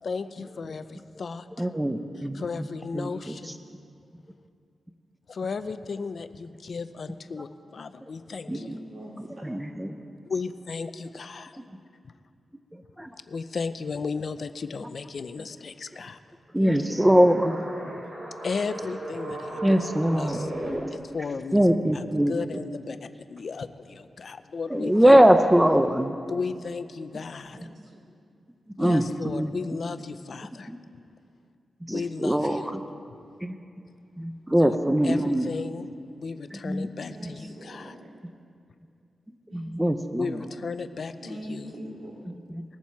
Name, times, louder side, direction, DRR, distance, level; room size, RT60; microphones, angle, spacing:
voice 1, 0.0-1.7 2.3-3.6 5.3-8.7 10.3-11.6 13.3-16.2 18.4-20.5 21.1-25.1 26.3-27.7 28.8-30.7 31.9-32.6 34.5-34.8 35.0-35.9 36.2-37.9 40.2-41.7, left 4 dB, 60° left, 12 dB, 0.5 m, -35 dB
voice 2, 1.5-2.7 2.9-3.4 7.4-7.5 8.5-8.8 9.2-10.0 11.6-11.7 12.7-13.1 14.8-14.9 15.4-15.5 15.9-16.0 16.5-17.6 19.6-20.9 21.2-21.3 21.5-22.6 24.7-26.2 27.5-27.7 28.8-29.6 30.7-30.8 31.9-32.8 33.4-33.6 34.2-35.5 36.5-36.9 37.2-37.3 39.5-40.5 42.3-42.6, equal, 10° right, 7 dB, 0.6 m, -23 dB
voice 3, 8.5-9.6 16.5-17.3 27.5-28.0 37.1-38.1 39.5-39.7 41.2-42.3, equal, 75° right, -2 dB, 2.4 m, -42 dB
sound 1, 16.9-20.7, right 1 dB, 55° right, 3.3 m, -37 dB
20.5 x 7.2 x 4.6 m, 2.4 s
wide cardioid pair, 90°, 0 cm